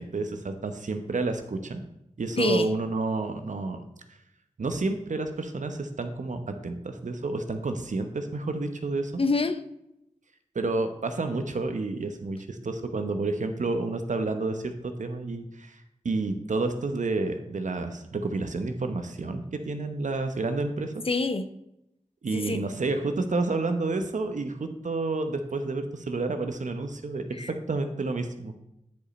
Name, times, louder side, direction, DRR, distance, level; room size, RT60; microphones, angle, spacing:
voice 1, 0.0-1.8 2.2-3.8 4.6-9.2 10.5-15.8 16.0-20.9 22.2-28.5, right 3 dB, 75° right, 0.9 m, -30 dB
voice 2, 2.4-2.7 9.2-9.6 21.1-21.5 22.3-22.6 27.4-27.5, left 3 dB, 50° left, 0.7 m, -26 dB
9.4 x 5.2 x 4.3 m
cardioid pair, 45°, 13 cm